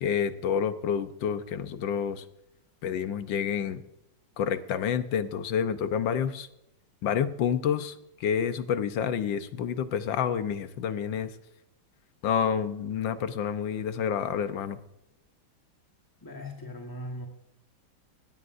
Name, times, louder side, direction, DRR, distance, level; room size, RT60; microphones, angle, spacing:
voice 1, 0.0-2.2 2.8-3.8 4.4-6.5 7.0-11.3 12.2-14.8, left 8 dB, 70° left, 11 dB, 1.5 m, -28 dB
voice 2, 16.2-17.3, left 1 dB, 15° left, 1 dB, 1.0 m, -39 dB
17.5 x 16.5 x 2.6 m, 0.84 s
omnidirectional pair, 2.3 m